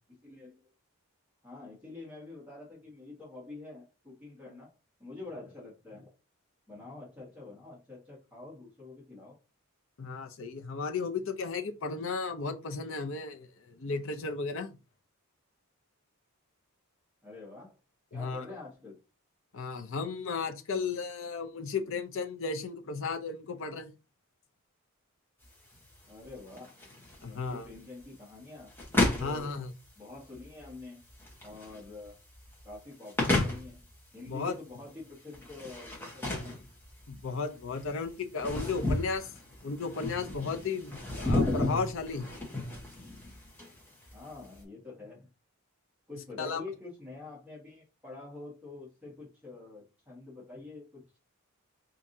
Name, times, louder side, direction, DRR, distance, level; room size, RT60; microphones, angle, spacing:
voice 1, 0.2-0.6 1.4-4.7 5.0-6.1 6.7-9.3 17.2-17.8 18.1-19.0 26.1-26.7 27.2-28.7 29.0-29.5 29.9-31.0 31.4-32.2 32.6-33.8 34.1-36.6 44.1-45.2 46.1-51.2, left 3 dB, 5° right, 1.5 m, -46 dB
voice 2, 10.0-14.7 18.1-18.5 19.5-23.9 27.2-27.7 29.2-29.7 34.3-34.6 37.1-39.3 39.6-42.3 46.4-46.6, left 4 dB, 60° left, 0.5 m, -34 dB
sound 1, 25.4-44.6, left 2 dB, 10° left, 1.0 m, -34 dB
4.6 x 2.6 x 2.6 m
head